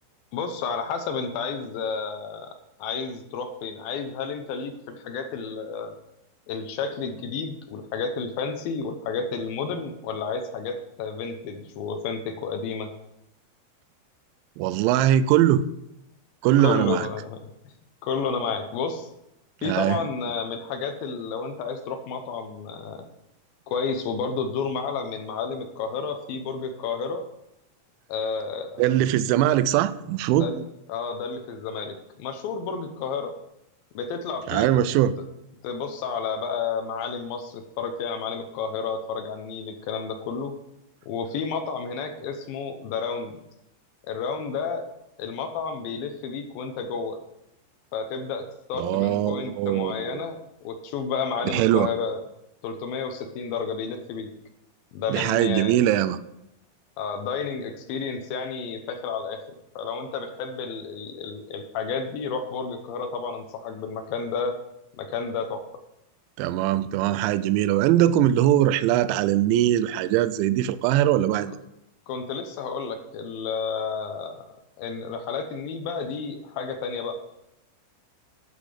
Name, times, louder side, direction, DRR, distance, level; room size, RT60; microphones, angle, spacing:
voice 1, 0.3-2.5 2.8-6.0 6.5-12.9 16.6-17.4 17.7-17.8 18.0-19.1 19.6-23.1 23.7-27.2 28.1-28.9 30.3-30.6 30.9-33.3 33.9-34.7 34.9-35.0 35.6-40.6 41.1-43.3 44.1-44.9 45.2-47.2 47.9-50.4 50.6-52.2 52.6-54.3 54.9-55.8 57.0-59.4 59.8-64.5 65.0-65.6 71.5-71.6 72.1-74.4 74.8-77.1, left 5 dB, 80° left, 6 dB, 2.1 m, -31 dB
voice 2, 14.6-15.6 16.4-17.1 19.6-20.0 28.8-30.5 34.5-35.1 48.7-50.2 51.5-51.9 55.1-56.2 66.4-71.6, right 12 dB, 90° right, 14 dB, 2.9 m, -21 dB
12.5 x 7.3 x 5.0 m, 0.86 s
omnidirectional pair, 5.3 m